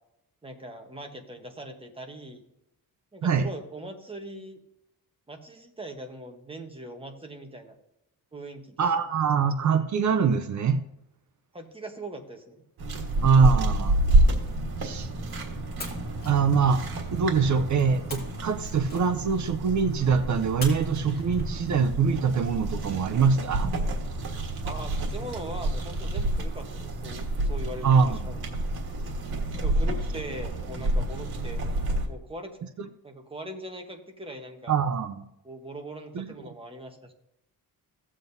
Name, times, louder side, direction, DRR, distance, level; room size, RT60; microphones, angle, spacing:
voice 1, 0.4-2.4 3.1-4.6 5.3-7.7 8.3-8.8 11.5-12.6 24.6-28.4 29.6-31.6 32.1-32.6 33.0-34.8 35.4-37.1, right 1 dB, 15° right, 3 dB, 1.0 m, -41 dB
voice 2, 8.8-10.8 13.2-14.0 14.8-15.1 16.3-16.8 17.1-23.7 27.8-28.2 34.7-35.3 36.1-36.5, right 6 dB, 50° right, 10 dB, 0.6 m, -23 dB
sound 1, 12.8-32.1, right 1 dB, 90° right, 1.6 m, -29 dB
sound 2, 13.0-15.3 15.8-17.4 18.1-19.5 20.6-21.9, left 2 dB, 25° left, 2.1 m, -45 dB
16.0 x 7.5 x 2.7 m, 0.83 s
wide cardioid pair, 175°, 36 cm